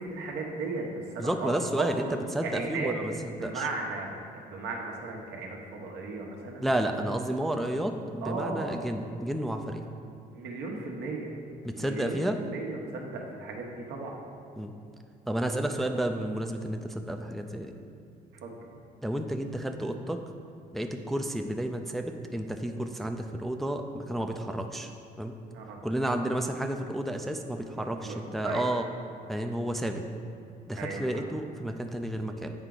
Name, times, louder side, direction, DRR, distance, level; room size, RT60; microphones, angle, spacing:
voice 1, 0.0-1.5 1.8-2.1 2.4-2.9 3.2-6.7 8.2-8.8 10.3-11.3 11.8-14.2 18.4-18.6 25.5-25.8 27.7-28.6 30.8-31.0, right 3 dB, 80° right, 0 dB, 1.1 m, -36 dB
voice 2, 1.2-3.7 6.6-9.8 11.6-12.4 14.6-14.7 15.3-17.7 19.0-20.2 20.7-24.9 25.2-25.4 25.8-28.9 29.3-30.0 30.7-32.5, right 1 dB, ahead, 4 dB, 0.3 m, -31 dB
8.1 x 4.7 x 3.8 m, 2.6 s
cardioid pair, 110°, 17 cm